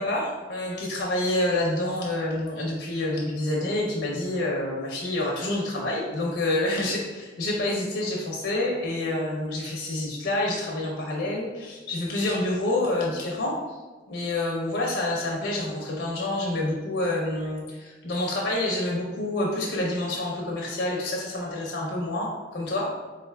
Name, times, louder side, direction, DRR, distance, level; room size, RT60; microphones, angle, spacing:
voice 1, 0.0-13.6 14.1-22.9, left 1 dB, 75° left, -2 dB, 0.6 m, -28 dB
3.9 x 3.2 x 2.2 m, 1.3 s
head